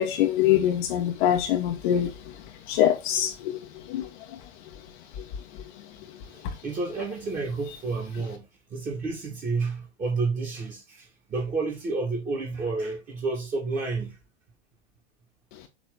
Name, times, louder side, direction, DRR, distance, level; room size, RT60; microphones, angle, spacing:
voice 1, 0.0-2.1 2.7-3.6 3.9-4.1, left 11 dB, 50° left, 1.2 m, -23 dB
voice 2, 6.3-8.4 8.7-14.2, right 3 dB, 25° right, 2.2 m, -30 dB
7.1 x 3.3 x 4.0 m
figure-of-eight pair, 90°, 33 cm